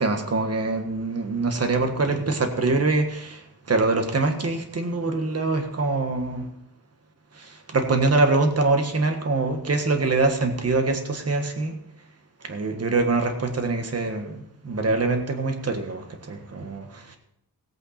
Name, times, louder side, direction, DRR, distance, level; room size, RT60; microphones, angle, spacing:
voice 1, 0.0-6.5 7.3-11.8 12.4-17.2, right 3 dB, 35° right, 5 dB, 1.5 m, -24 dB
17.0 x 8.7 x 4.3 m, 0.75 s
wide cardioid pair, 155°, 40 cm